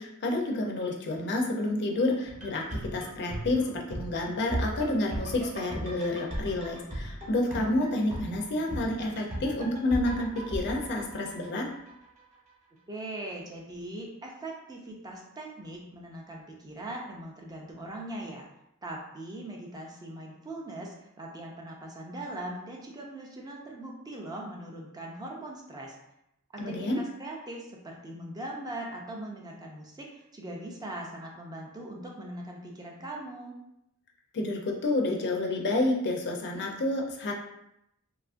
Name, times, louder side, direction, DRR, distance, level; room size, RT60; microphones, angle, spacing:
voice 1, 0.0-11.7 26.6-27.0 34.3-37.3, left 2 dB, 50° left, 1 dB, 0.4 m, -29 dB
sound 1, 2.3-12.2 12.5-12.6, right 1 dB, 35° right, 0.9 m, -37 dB
voice 2, 12.9-18.5 18.8-25.9 26.5-33.6, right 1 dB, 20° right, -1 dB, 0.4 m, -40 dB
2.8 x 2.4 x 2.4 m, 0.81 s
head